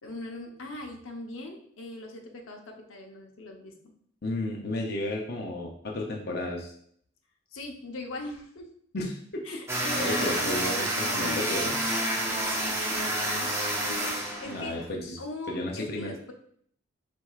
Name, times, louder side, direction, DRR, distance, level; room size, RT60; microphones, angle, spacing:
voice 1, 0.0-3.9 7.5-8.7 9.4-10.7 11.0-11.8 12.2-14.0 14.4-14.8 15.2-16.3, left 2 dB, 85° left, 2 dB, 0.8 m, -41 dB
voice 2, 4.2-6.7 8.9-9.4 9.9-11.7 14.4-15.2 15.5-16.1, left 2 dB, 50° left, -1 dB, 0.6 m, -33 dB
sound 1, 9.7-14.8, right 1 dB, 15° right, 0.6 m, -29 dB
4.5 x 4.2 x 2.4 m, 0.62 s
head